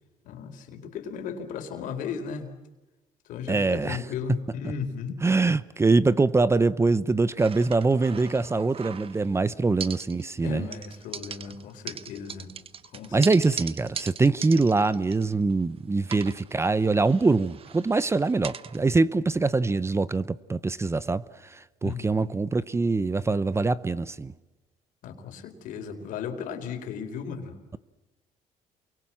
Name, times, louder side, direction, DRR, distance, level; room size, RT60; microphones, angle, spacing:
voice 1, 0.2-2.5 3.3-5.2 9.6-9.7 10.4-12.6 12.9-13.5 21.8-22.3 25.0-27.6, left 6 dB, 75° left, 4.5 m, -36 dB
voice 2, 3.5-4.0 5.2-10.7 13.1-21.2 21.5-24.3, right 3 dB, 20° right, 0.9 m, -24 dB
sound 1, 7.4-9.4 9.8-10.4 10.7-15.7 16.0-18.8, right 7 dB, 45° right, 1.3 m, -40 dB
29.0 x 24.0 x 7.6 m
cardioid pair, 95°, 14 cm